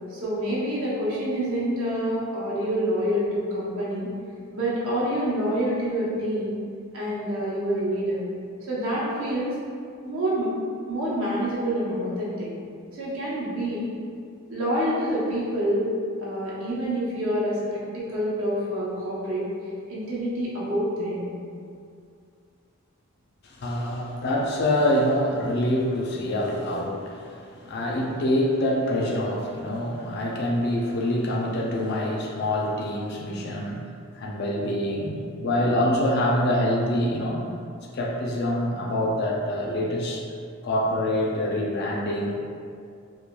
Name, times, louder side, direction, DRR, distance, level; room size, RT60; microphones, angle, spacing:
voice 1, 0.1-4.1 4.5-6.5 6.9-8.2 8.7-9.6 10.0-10.5 10.9-12.5 12.9-13.9 14.5-15.9 16.2-19.4 19.9-21.3, equal, 70° right, -7 dB, 0.8 m, -27 dB
voice 2, 23.4-33.9 34.2-37.4 37.9-40.2 40.6-42.4, left 1 dB, 50° left, -2 dB, 0.4 m, -25 dB
3.0 x 2.2 x 2.2 m, 2.3 s
head